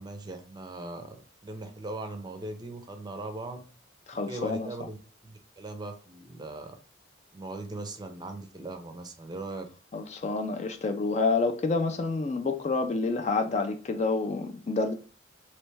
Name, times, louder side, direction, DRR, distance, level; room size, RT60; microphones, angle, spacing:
voice 1, 0.0-3.6 4.3-5.0 5.2-6.8 7.3-9.7, right 2 dB, 20° right, 0.5 m, -39 dB
voice 2, 4.1-4.7 9.9-14.9, left 3 dB, 35° left, 0.4 m, -28 dB
3.2 x 3.0 x 3.3 m
head